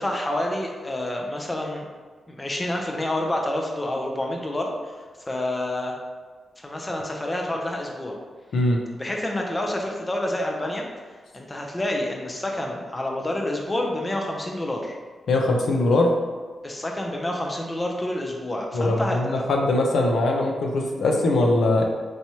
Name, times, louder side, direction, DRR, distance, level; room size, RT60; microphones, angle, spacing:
voice 1, 0.0-1.9 2.3-5.9 6.6-8.2 9.0-10.8 11.3-15.0 16.6-19.4, left 1 dB, 20° left, 0 dB, 0.5 m, -28 dB
voice 2, 15.3-16.1 18.7-21.8, left 2 dB, 80° left, 1 dB, 0.5 m, -21 dB
4.7 x 2.9 x 2.8 m, 1.5 s
wide cardioid pair, 110°, 0 cm